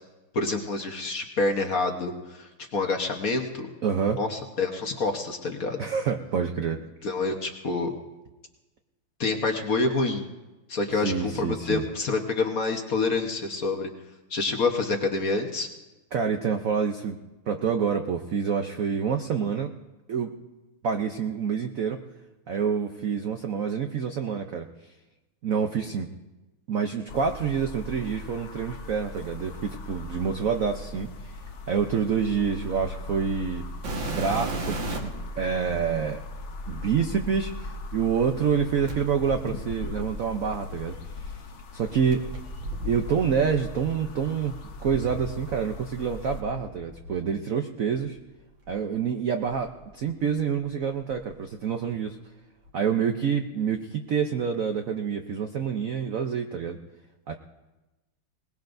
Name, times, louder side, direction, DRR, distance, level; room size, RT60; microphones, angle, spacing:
voice 1, 0.3-3.7 4.2-5.8 7.0-7.9 9.2-10.2 10.7-13.9 14.3-15.7, left 3 dB, 50° left, 3 dB, 1.2 m, -27 dB
voice 2, 3.8-4.2 5.8-6.8 11.0-11.8 16.1-17.2 17.5-19.7 20.1-20.3 20.8-22.0 22.5-24.7 25.4-26.1 26.7-31.1 31.7-33.6 34.1-35.1 35.4-36.2 36.7-41.3 41.7-42.3 42.8-44.5 44.8-48.2 48.7-52.2 52.7-56.8 57.3-57.4, right 6 dB, 80° right, 5 dB, 0.7 m, -27 dB
sound 1, 27.1-46.4, left 2 dB, 70° left, 0.6 m, -39 dB
sound 2, 33.8-35.2 36.1-36.2 38.8-40.9 42.1-45.8 46.1-47.2 47.9-48.1 48.7-48.8 49.5-50.6 50.8-51.3 52.6-52.7, right 1 dB, 60° right, 2.3 m, -36 dB
21.5 x 19.5 x 2.6 m, 1.1 s
omnidirectional pair, 2.4 m